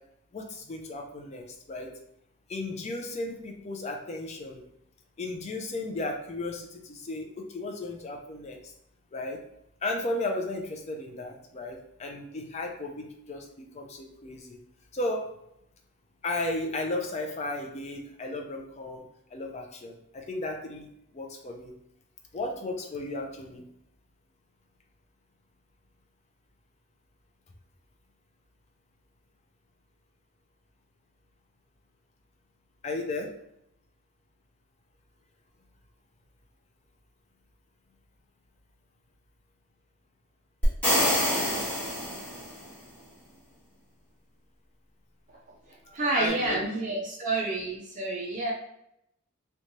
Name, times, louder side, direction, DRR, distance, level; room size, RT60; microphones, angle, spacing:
voice 1, 0.3-1.9 2.5-4.6 5.2-8.7 9.1-9.4 9.8-14.6 14.9-15.3 16.2-19.0 19.3-20.9 21.1-21.7 22.3-23.6 32.8-33.3 46.1-46.6, left 2 dB, 30° left, 2 dB, 0.4 m, -34 dB
sound 1, 40.6-42.7, equal, 5° left, 1.3 m, -26 dB
voice 2, 45.9-48.5, right 2 dB, 35° right, -3 dB, 0.4 m, -29 dB
3.0 x 2.2 x 2.6 m, 0.79 s
head